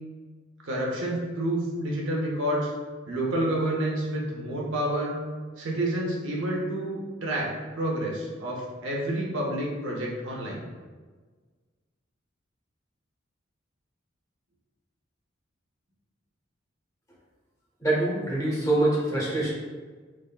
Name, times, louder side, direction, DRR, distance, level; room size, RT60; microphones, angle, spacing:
voice 1, 0.6-2.7 3.1-5.1 5.6-10.6, right 1 dB, 75° right, -3 dB, 0.7 m, -29 dB
voice 2, 17.8-19.5, right 2 dB, 15° left, -6 dB, 0.7 m, -24 dB
3.4 x 2.1 x 2.3 m, 1.4 s
head